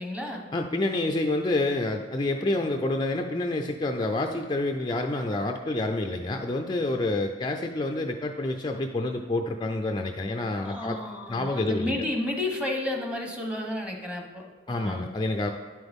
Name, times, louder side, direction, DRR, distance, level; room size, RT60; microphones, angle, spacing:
voice 1, 0.0-0.5 10.6-15.1, left 1 dB, 5° right, 2 dB, 1.1 m, -32 dB
voice 2, 0.5-11.0 11.3-11.9 14.7-15.5, left 2 dB, 25° left, 4 dB, 0.4 m, -28 dB
10.5 x 7.9 x 3.6 m, 1.5 s
head